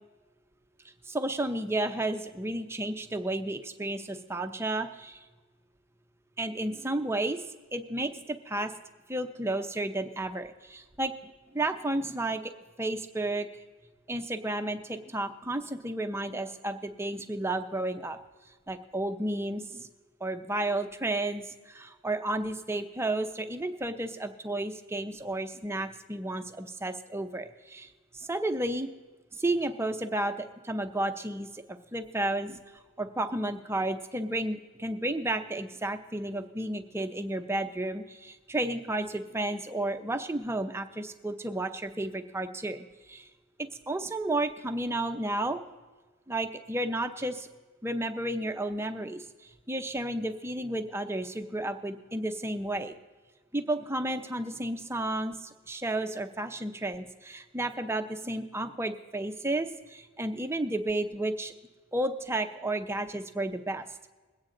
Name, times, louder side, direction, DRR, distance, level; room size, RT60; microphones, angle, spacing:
voice 1, 1.1-5.2 6.4-7.4 7.7-8.7 9.1-12.5 12.8-13.5 14.1-18.2 18.7-19.9 20.2-28.9 29.3-32.6 33.0-43.3 43.6-45.6 46.3-47.5 47.8-53.0 53.5-61.5 61.9-63.8, right 1 dB, 10° right, 7 dB, 0.6 m, -32 dB
21.5 x 8.8 x 3.8 m, 1.3 s
head